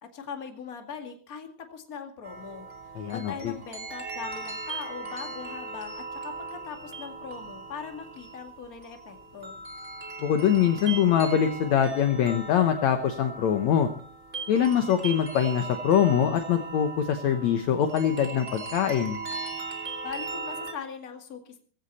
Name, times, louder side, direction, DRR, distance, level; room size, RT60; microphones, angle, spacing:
voice 1, 0.0-2.7 3.1-9.6 20.0-21.6, left 6 dB, 30° left, 4 dB, 1.8 m, -40 dB
sound 1, 2.2-20.7, right 3 dB, 25° right, 1.9 m, -39 dB
voice 2, 2.9-3.5 10.2-13.9 14.5-19.2, left 9 dB, 70° left, 7 dB, 1.7 m, -23 dB
17.5 x 15.5 x 4.2 m, 0.43 s
omnidirectional pair, 4.6 m